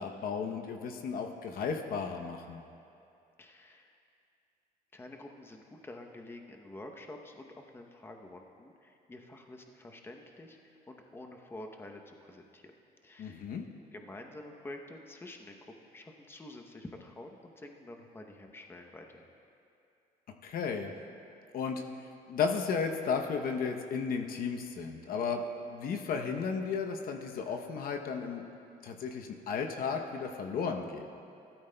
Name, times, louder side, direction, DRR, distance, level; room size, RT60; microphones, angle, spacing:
voice 1, 0.0-2.6 13.2-13.6 20.4-20.9 21.5-28.4 28.8-31.1, left 5 dB, 60° left, 4 dB, 0.8 m, -34 dB
voice 2, 3.4-3.9 4.9-12.7 13.0-13.5 13.9-19.3, left 1 dB, 15° left, 3 dB, 0.8 m, -48 dB
15.5 x 13.0 x 2.2 m, 2.6 s
cardioid pair, 110°, 17 cm